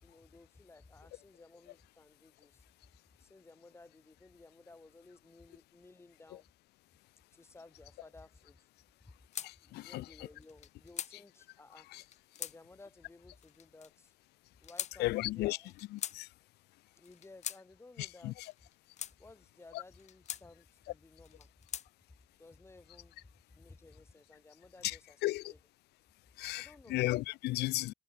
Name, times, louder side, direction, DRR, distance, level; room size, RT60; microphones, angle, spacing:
voice 1, 0.0-2.6 3.2-6.5 7.3-8.7 9.0-9.2 9.6-11.9 12.4-14.1 14.6-15.7 17.0-18.5 19.2-21.5 22.4-25.2 25.5-25.6 26.6-27.0, left 2 dB, 15° left, 5.5 m, -57 dB
sound 1, 9.3-9.5 10.4-11.1 11.9-12.6 13.4-13.9 14.6-14.9 15.6-16.2 17.0-17.6 18.4-19.1 19.9-20.4 21.2-21.9, left 10 dB, 45° left, 0.6 m, -42 dB
voice 2, 9.4-10.3 11.9-12.0 15.0-15.6 15.9-16.3 18.0-18.5 19.7-19.8 24.8-25.5 26.4-27.9, left 18 dB, 80° left, 0.7 m, -35 dB
cardioid pair, 110°, 17 cm